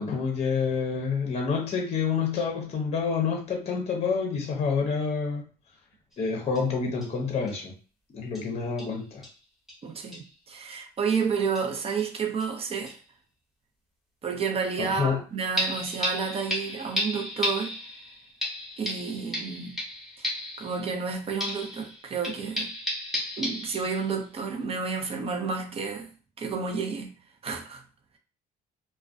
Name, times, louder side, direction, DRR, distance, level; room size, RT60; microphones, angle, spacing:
voice 1, 0.0-5.4 6.2-7.7 8.1-9.2 14.8-15.2, left 5 dB, 40° left, 0.7 m, -28 dB
sound 1, 6.1-6.2 6.5-6.6 7.0-7.1 7.5-7.6 8.3-8.4 8.8-9.0 9.2-9.3 9.7-9.8 10.1-10.3 11.1-11.2 11.5-12.1 12.4-12.5 12.9-13.0 15.6-21.1 21.4-24.2 24.6-24.7, equal, ahead, 1.0 m, -33 dB
voice 2, 9.8-13.0 14.2-17.8 18.8-19.7 20.2-20.3 20.6-22.7 23.4-26.1 26.4-27.1 27.4-27.8, right 5 dB, 35° right, 0.5 m, -30 dB
2.3 x 2.2 x 2.4 m
cardioid pair, 110°, 17 cm